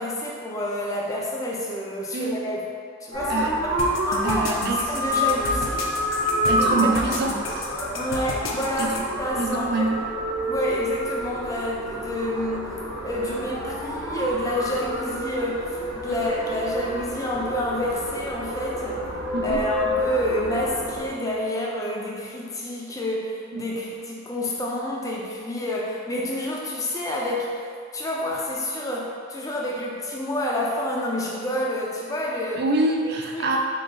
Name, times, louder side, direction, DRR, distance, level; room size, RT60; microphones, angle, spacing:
voice 1, 0.0-2.6 3.0-3.7 4.1-4.6 4.9-5.9 6.5-6.9 7.9-8.9 9.2-9.9 10.5-12.7 13.0-15.7 15.9-19.0 19.4-27.6 27.9-32.6 33.3-33.6, left 1 dB, 15° left, -3 dB, 0.4 m, -28 dB
sound 1, 3.1-21.1, equal, 80° right, 1.0 m, -28 dB
sound 2, 3.8-9.0, left 3 dB, 75° left, 0.4 m, -32 dB
voice 2, 4.2-4.8 6.2-7.3 8.8-8.9 9.3-9.9 16.1-16.2 19.3-19.6 23.5-23.6 32.6-33.6, right 2 dB, 55° right, 1 dB, 0.3 m, -25 dB
3.7 x 2.3 x 3.6 m, 2.2 s
head